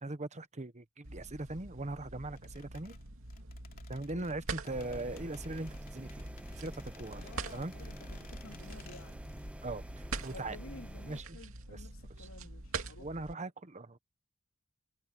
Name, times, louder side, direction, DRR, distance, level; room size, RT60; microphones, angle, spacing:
voice 1, 0.0-3.0 3.9-6.3 6.6-7.7 9.6-10.6 11.1-11.2 11.7-11.8 12.2-12.3 13.0-14.0, right 2 dB, 35° right, 1.1 m, -40 dB
sound 1, 1.0-13.3, right 3 dB, 70° right, 2.8 m, -45 dB
sound 2, 2.4-9.5 9.8-9.9, left 6 dB, 45° left, 2.9 m, -59 dB
sound 3, 4.7-11.2, equal, 5° right, 0.7 m, -47 dB
voice 2, 7.2-9.2 10.3-13.1, left 2 dB, 70° left, 3.6 m, -52 dB
head